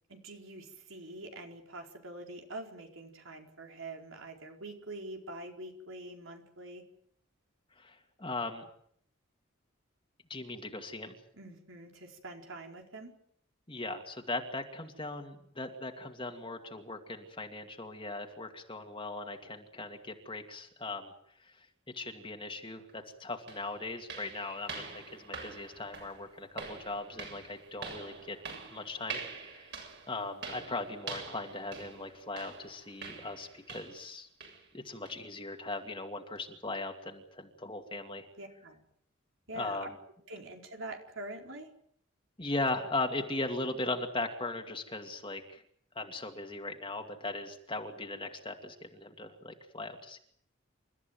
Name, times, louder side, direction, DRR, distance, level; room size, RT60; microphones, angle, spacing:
voice 1, 0.1-6.8 11.3-13.1 38.4-38.8 39.5-39.9 40.3-41.7, right 2 dB, 75° right, 2 dB, 4.6 m, -45 dB
voice 2, 7.8-8.6 10.3-11.1 13.7-21.1 21.4-21.7 21.9-28.4 28.7-29.7 30.1-34.3 34.7-38.3 39.6-40.0 42.4-45.6 45.9-50.2, left 2 dB, 25° left, 3 dB, 2.3 m, -38 dB
sound 1, 22.9-23.0 23.5-34.1 34.4-34.7 35.1-35.2 35.7-35.8 36.4-36.5, right 4 dB, 55° right, 7.4 m, -45 dB
29.0 x 14.0 x 9.3 m, 0.68 s
head